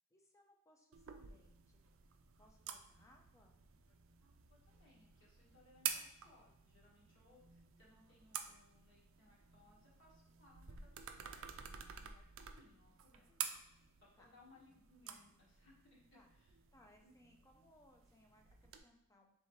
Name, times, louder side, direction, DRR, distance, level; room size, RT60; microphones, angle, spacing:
voice 1, 0.1-1.8 2.4-3.6 5.9-6.0 14.2-14.3 16.1-16.3 16.7-19.3, left 1 dB, 15° left, 2 dB, 0.5 m, -68 dB
sound 1, 0.9-18.8, right 9 dB, 60° right, 0.4 m, -50 dB
voice 2, 4.2-13.6 14.0-16.5 17.0-17.1, left 2 dB, 55° left, -6 dB, 1.5 m, -68 dB
4.3 x 3.3 x 3.1 m, 0.80 s
head